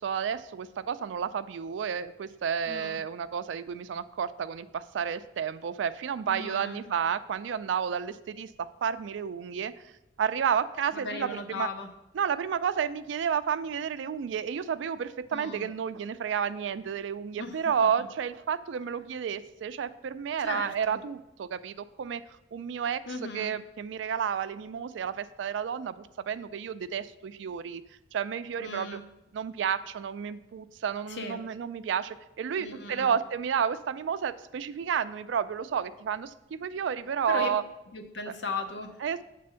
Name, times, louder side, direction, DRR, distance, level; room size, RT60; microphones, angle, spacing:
voice 1, 0.0-9.7 10.2-11.7 12.1-22.2 22.5-23.0 23.3-27.8 28.1-29.0 29.3-37.6 39.0-39.2, right 7 dB, 85° right, 13 dB, 0.3 m, -31 dB
voice 2, 2.7-3.0 6.3-6.8 10.9-11.9 15.3-15.7 17.4-18.1 20.4-21.0 23.1-23.5 28.6-29.0 31.1-31.4 32.6-33.2 37.3-37.5 37.9-39.0, left 3 dB, 70° left, 5 dB, 0.7 m, -37 dB
7.6 x 3.4 x 5.6 m, 0.91 s
head